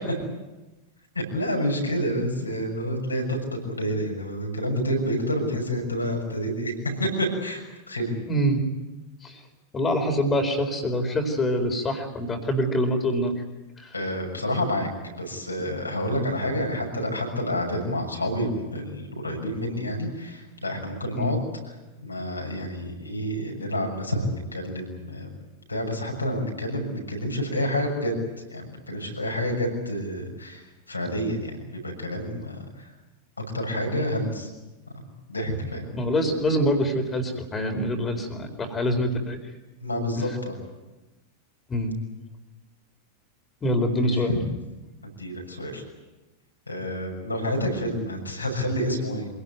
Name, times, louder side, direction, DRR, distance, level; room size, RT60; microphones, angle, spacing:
voice 1, 1.1-3.4 3.6-8.1 13.9-14.9 15.2-21.4 22.0-25.3 25.7-28.2 28.5-30.6 30.9-32.7 33.5-34.5 35.3-35.9 39.8-40.6 43.9-44.4 45.2-45.8 46.7-49.3, equal, 85° left, 1 dB, 6.7 m, -28 dB
voice 2, 8.3-8.6 9.2-9.4 9.7-13.4 13.8-13.9 21.1-21.4 35.9-39.4 41.7-41.9 43.6-44.3, equal, 20° left, 6 dB, 4.5 m, -25 dB
26.5 x 18.0 x 9.3 m, 1.1 s
figure-of-eight pair, 90°, 0 cm